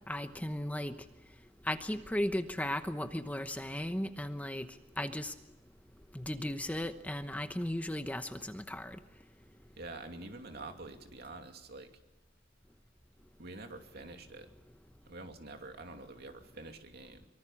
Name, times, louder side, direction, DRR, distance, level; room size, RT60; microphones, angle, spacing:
voice 1, 0.1-0.9 1.6-4.7 5.0-5.3 6.1-9.0, left 1 dB, 10° left, 8 dB, 1.0 m, -36 dB
voice 2, 9.8-11.9 13.4-14.5 15.1-17.3, right 2 dB, 60° right, 5 dB, 2.7 m, -47 dB
24.0 x 24.0 x 7.3 m, 0.97 s
head